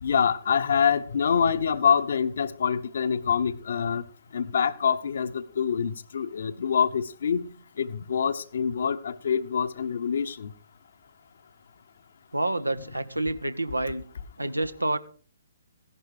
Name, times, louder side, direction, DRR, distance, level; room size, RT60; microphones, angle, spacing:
voice 1, 0.0-4.0 4.3-10.5, left 7 dB, 55° left, 1.1 m, -25 dB
voice 2, 12.3-14.0 14.4-15.0, right 2 dB, 85° right, 1.2 m, -28 dB
16.5 x 11.5 x 4.9 m
figure-of-eight pair, 125°, 0 cm